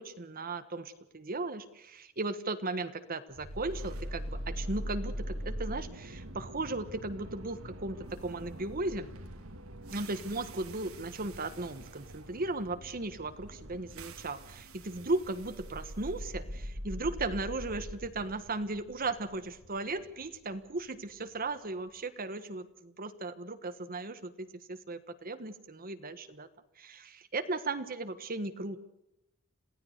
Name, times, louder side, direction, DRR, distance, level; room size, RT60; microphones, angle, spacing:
voice 1, 0.0-9.1 9.9-26.5 26.8-28.8, right 2 dB, 45° right, 10 dB, 1.4 m, -36 dB
Powerdown (Big Machine), 3.3-21.4, equal, 90° right, 2.7 m, -43 dB
28.0 x 17.0 x 6.6 m, 0.89 s
head